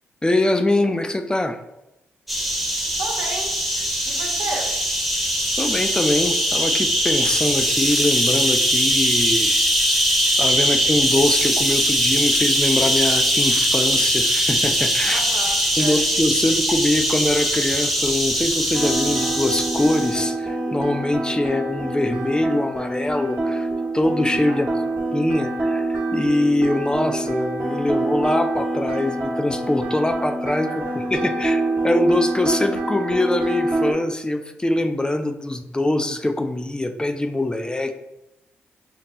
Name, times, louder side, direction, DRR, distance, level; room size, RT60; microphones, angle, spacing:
voice 1, 0.2-1.6 5.6-9.6 10.4-15.2 15.8-23.7 23.9-24.7 25.1-38.0, left 1 dB, 15° left, 7 dB, 0.3 m, -23 dB
sound 1, 2.3-20.2, equal, 5° right, 0.8 m, -21 dB
voice 2, 3.0-3.5 4.0-4.7 15.1-16.0 21.4-21.6 24.5-24.8 30.7-31.0, right 2 dB, 85° right, 0 dB, 0.7 m, -32 dB
sound 2, 18.7-33.9, right 2 dB, 50° right, 1.0 m, -26 dB
5.2 x 2.1 x 2.9 m, 0.92 s
supercardioid pair, 60°, 5 cm